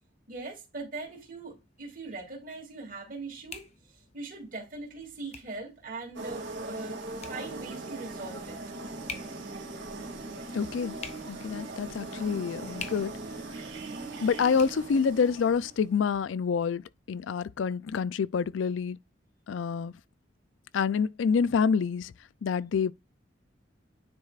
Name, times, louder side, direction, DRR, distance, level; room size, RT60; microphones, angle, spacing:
voice 1, 0.3-7.0 7.3-8.6 12.5-12.6, right 3 dB, 45° right, 2.6 m, -41 dB
sound 1, 1.0-16.2, left 5 dB, 35° left, 0.9 m, -50 dB
sound 2, 6.2-15.9, right 2 dB, 75° right, 2.2 m, -40 dB
voice 2, 10.5-10.9 11.3-13.1 14.2-16.8 17.1-19.0 19.5-19.9 20.7-22.1 22.4-22.9, left 6 dB, 85° left, 0.4 m, -27 dB
9.6 x 4.3 x 2.4 m
head